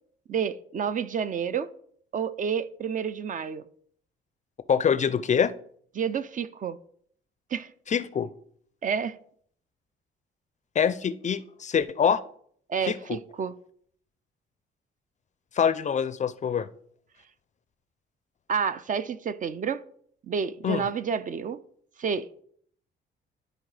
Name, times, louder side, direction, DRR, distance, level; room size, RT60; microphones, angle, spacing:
voice 1, 0.3-1.7 2.1-3.6 6.0-6.8 7.5-7.7 8.8-9.2 12.7-13.5 18.5-19.8 20.3-21.6 22.0-22.4, right 7 dB, 40° right, 0.4 m, -29 dB
voice 2, 4.7-5.5 7.9-8.3 10.8-12.2 12.9-13.2 15.6-16.7 20.6-20.8, left 7 dB, 35° left, 0.4 m, -25 dB
12.0 x 4.0 x 3.3 m
cardioid pair, 90°, 20 cm